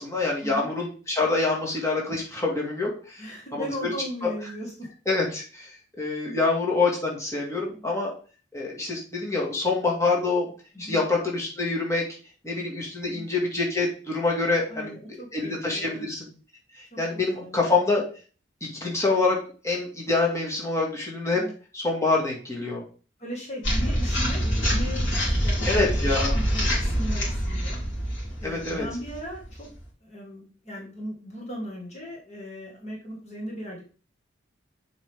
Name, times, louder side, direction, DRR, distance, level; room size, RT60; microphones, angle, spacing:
voice 1, 0.0-3.2 3.5-3.9 4.2-4.3 5.1-5.7 6.0-8.1 8.5-10.5 10.8-12.0 12.4-14.9 15.3-16.3 16.7-18.0 18.6-19.4 19.6-21.4 21.7-22.8 25.7-26.4 28.4-28.9, left 3 dB, 15° left, -3 dB, 2.2 m, -26 dB
voice 2, 3.2-4.9 7.7-7.9 10.7-11.0 13.0-13.3 14.7-16.0 16.9-17.6 21.3-21.5 23.2-27.8 28.4-29.7 30.0-33.8, equal, 35° left, -2 dB, 2.0 m, -38 dB
sound 1, 23.6-29.8, equal, 75° left, 3.7 m, -25 dB
7.5 x 5.4 x 3.7 m, 0.38 s
head